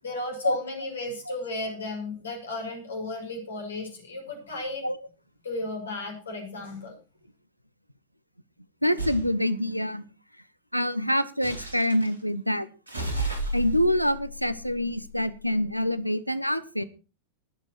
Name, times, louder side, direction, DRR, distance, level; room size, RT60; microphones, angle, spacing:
voice 1, 0.0-4.9 5.4-6.9, left 2 dB, 70° left, 2 dB, 6.5 m, -34 dB
voice 2, 8.8-10.0 10.7-12.7 13.5-16.8, equal, 90° left, 15 dB, 0.9 m, -26 dB
sound 1, 9.0-9.3 11.4-12.1 12.9-15.5, right 1 dB, 80° right, 3.7 m, -33 dB
20.0 x 7.8 x 4.6 m, 0.34 s
figure-of-eight pair, 90°, 0 cm